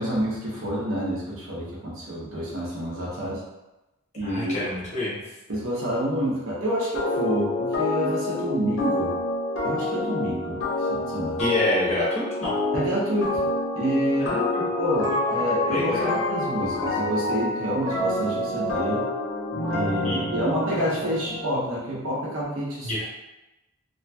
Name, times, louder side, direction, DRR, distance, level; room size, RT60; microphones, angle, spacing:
voice 1, 0.0-3.4 4.1-4.6 5.5-9.2 9.6-11.4 12.7-13.5 13.7-14.3 14.8-19.1 19.7-23.1, equal, 70° right, -5 dB, 0.9 m, -28 dB
voice 2, 4.2-5.2 11.4-12.6 14.2-14.6 15.1-15.3 15.7-16.2 20.0-20.3 22.8-23.1, left 1 dB, 30° left, -7 dB, 0.7 m, -28 dB
sound 1, 6.9-21.6, left 2 dB, 70° left, 0.6 m, -27 dB
2.8 x 2.7 x 2.3 m, 1.0 s
head